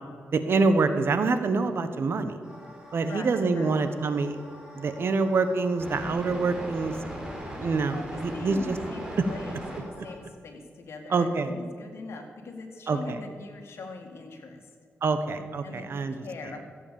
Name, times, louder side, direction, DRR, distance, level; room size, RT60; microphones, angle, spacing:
voice 1, 0.3-2.4 2.9-4.4 4.7-6.9 7.6-8.8 11.1-11.5 12.9-13.2 15.0-16.2, right 4 dB, 60° right, 9 dB, 1.1 m, -26 dB
sound 1, 2.4-10.1, equal, 15° right, 4.2 m, -40 dB
voice 2, 3.0-3.8 7.9-14.7 15.6-16.6, left 3 dB, 75° left, 3 dB, 2.1 m, -42 dB
15.0 x 8.2 x 7.0 m, 2.1 s
cardioid pair, 80°, 4 cm